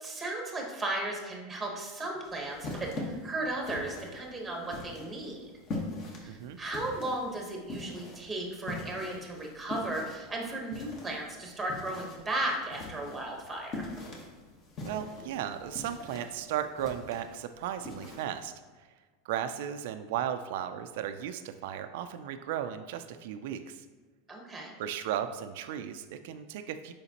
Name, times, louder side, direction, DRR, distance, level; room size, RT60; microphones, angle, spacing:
voice 1, 0.0-5.5 6.2-13.9 24.3-24.7, right 1 dB, 10° right, 1 dB, 1.0 m, -35 dB
sound 1, 2.2-18.4, left 2 dB, 30° left, 1.1 m, -43 dB
voice 2, 6.2-6.6 14.8-18.5 19.2-23.8 24.8-26.9, right 10 dB, 65° right, 8 dB, 0.3 m, -35 dB
6.8 x 5.0 x 2.8 m, 1.4 s
supercardioid pair, 155°, 0 cm